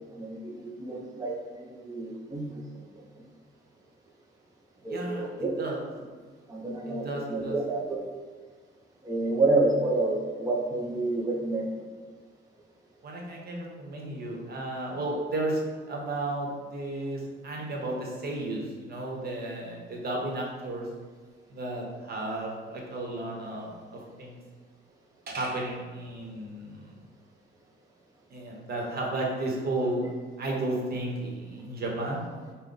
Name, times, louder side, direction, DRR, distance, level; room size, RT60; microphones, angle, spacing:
voice 1, 0.2-2.8 4.8-5.5 6.5-8.0 9.0-11.7, right 2 dB, 15° right, -2 dB, 0.6 m, -29 dB
voice 2, 4.9-5.3 5.6-5.8 6.9-7.6 13.0-20.9 21.5-24.4 25.3-26.9 28.3-30.1 30.4-32.2, right 2 dB, 50° right, -1 dB, 1.1 m, -33 dB
5.5 x 2.2 x 3.9 m, 1.5 s
cardioid pair, 90°, 20 cm